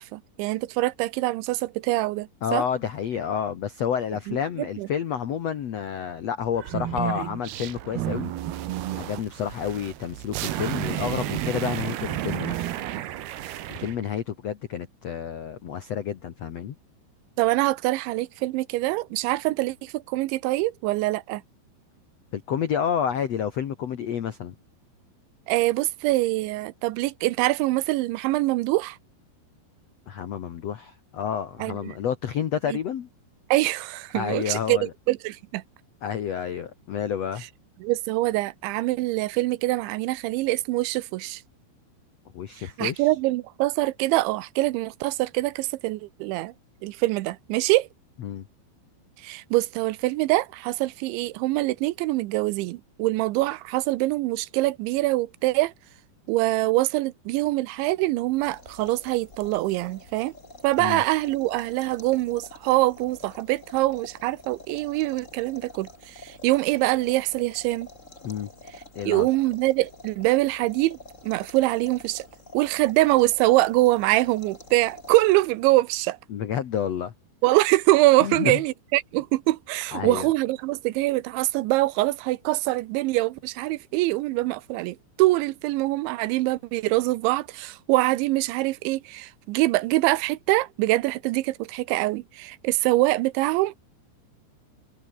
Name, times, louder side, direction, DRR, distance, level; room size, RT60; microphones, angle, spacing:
voice 1, 0.0-2.6 4.3-4.9 17.4-21.4 25.5-29.0 31.6-32.0 32.7-32.8 33.5-35.6 37.8-41.4 42.6-46.5 46.8-47.9 49.2-55.7 56.3-60.3 60.6-67.9 69.1-71.0 71.2-72.3 72.5-76.2 77.4-93.8, right 19 dB, 85° right, 3.2 m, -24 dB
voice 2, 2.4-8.3 9.0-12.7 13.7-16.7 22.3-24.5 30.1-33.1 34.1-34.9 36.0-37.4 42.3-43.1 48.2-48.5 60.8-61.0 68.2-68.5 68.9-69.3 76.3-77.1 78.2-78.6 79.9-80.3, left 8 dB, 85° left, 1.4 m, -29 dB
sound 1, 6.5-14.0, right 13 dB, 65° right, 3.1 m, -31 dB
sound 2, 58.3-75.7, left 2 dB, 15° left, 5.5 m, -47 dB
omnidirectional pair, 5.3 m